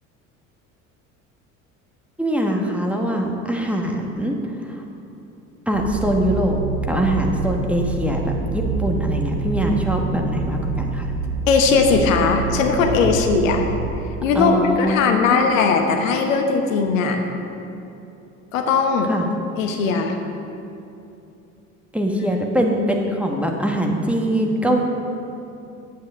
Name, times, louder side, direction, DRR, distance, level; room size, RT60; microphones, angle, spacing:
voice 1, 2.2-4.3 5.7-6.6 6.9-11.1 14.3-15.5 19.1-19.3 21.9-24.8, equal, 5° right, 1 dB, 1.4 m, -22 dB
sound 1, 5.7-13.9, right 4 dB, 90° right, 0.9 m, -26 dB
voice 2, 11.5-13.7 14.2-17.2 18.5-19.1 19.6-20.2, left 5 dB, 70° left, 4 dB, 1.1 m, -19 dB
9.5 x 8.2 x 6.3 m, 2.8 s
figure-of-eight pair, 65°, 41 cm